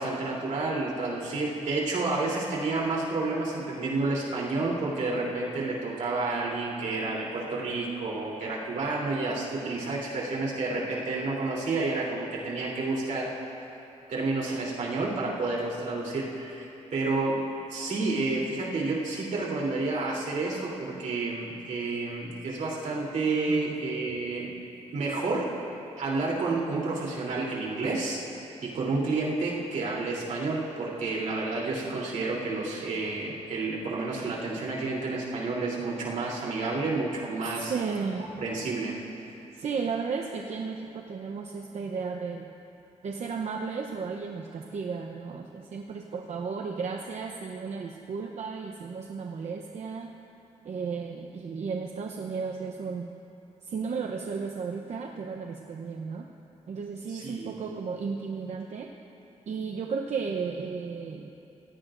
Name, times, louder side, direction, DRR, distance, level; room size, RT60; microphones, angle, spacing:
voice 1, 0.0-13.3 14.1-24.5 24.9-25.5 26.0-37.7 38.4-38.9 57.1-57.6, right 3 dB, 90° right, -4 dB, 3.4 m, -30 dB
voice 2, 37.6-38.3 39.5-42.5 43.0-50.1 50.6-53.1 53.6-56.3 56.7-58.9 59.5-61.3, right 5 dB, 65° right, 2 dB, 0.8 m, -34 dB
27.0 x 16.5 x 2.6 m, 2.8 s
wide cardioid pair, 130°, 12 cm